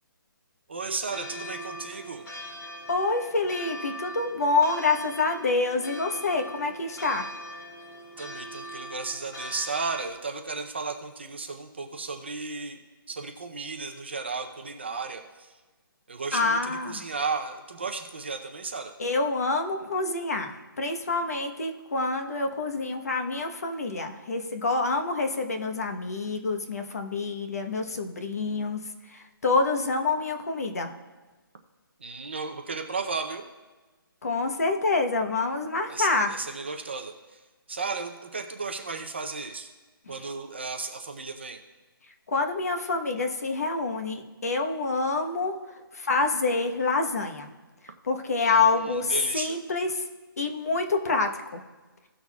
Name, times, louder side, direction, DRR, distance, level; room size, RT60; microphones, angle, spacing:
voice 1, 0.7-2.2 8.2-12.8 13.1-15.6 16.1-18.9 32.0-33.5 35.9-37.4 37.7-39.7 40.1-41.6 48.4-49.6, right 4 dB, 30° right, 4 dB, 0.6 m, -34 dB
sound 1, 1.1-10.1, equal, 70° left, 2.4 m, -41 dB
voice 2, 2.9-7.3 16.3-17.0 19.0-30.9 34.2-36.3 42.3-45.6 45.9-47.5 48.0-50.1 50.4-51.6, left 3 dB, 40° left, 4 dB, 1.1 m, -27 dB
17.5 x 6.3 x 2.3 m, 1.2 s
hypercardioid pair, 180°, 12 cm